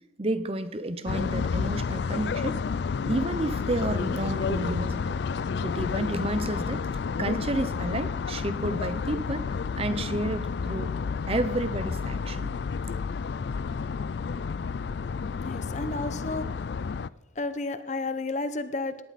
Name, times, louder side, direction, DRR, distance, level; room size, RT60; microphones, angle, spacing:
voice 1, 0.2-2.6 3.0-5.2 5.6-6.8 7.2-9.5 9.8-10.9 11.3-12.5, right 1 dB, 30° right, 12 dB, 0.7 m, -30 dB
sound 1, 1.1-17.1, left 5 dB, 65° left, 0.4 m, -30 dB
voice 2, 15.4-16.5 17.3-19.0, left 2 dB, 40° left, 12 dB, 0.8 m, -32 dB
18.0 x 11.5 x 4.2 m, 1.1 s
head